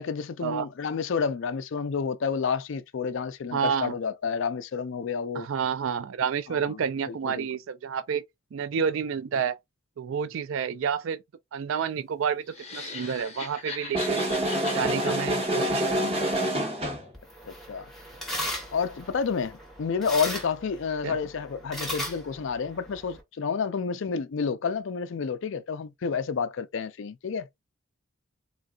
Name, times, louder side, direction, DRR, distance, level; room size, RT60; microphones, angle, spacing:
voice 1, 0.0-5.5 6.7-6.8 7.1-7.5 17.5-17.9 18.7-27.5, left 5 dB, 60° left, 0.4 m, -30 dB
voice 2, 3.5-3.9 5.3-8.2 8.5-9.6 10.0-11.2 11.5-12.4 12.7-14.3 14.7-16.2 21.0-21.2, right 7 dB, 65° right, 0.4 m, -29 dB
sound 1, 12.4-16.7, left 4 dB, 30° left, 0.8 m, -40 dB
sound 2, 13.9-17.1, right 1 dB, 25° right, 1.1 m, -27 dB
sound 3, 17.1-23.2, equal, ahead, 0.9 m, -37 dB
3.9 x 2.3 x 2.3 m
head